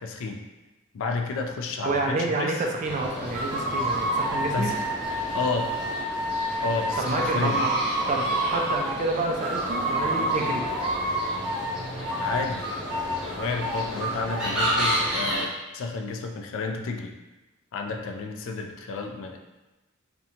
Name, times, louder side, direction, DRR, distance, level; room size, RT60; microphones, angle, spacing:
voice 1, 0.0-0.4 0.9-2.6 4.5-4.8 5.3-5.7 6.6-7.6 12.2-12.6 12.9-17.1 17.7-19.4, left 4 dB, 65° left, 3 dB, 0.3 m, -31 dB
voice 2, 1.8-4.7 7.0-7.7 8.1-10.7, right 2 dB, 35° right, 1 dB, 0.3 m, -28 dB
sound 1, 2.8-15.5, equal, 5° right, 0.7 m, -32 dB
sound 2, 3.3-9.0 9.4-11.7 12.0-14.9, right 1 dB, 85° right, 0.5 m, -29 dB
2.7 x 2.1 x 2.7 m, 1.1 s
head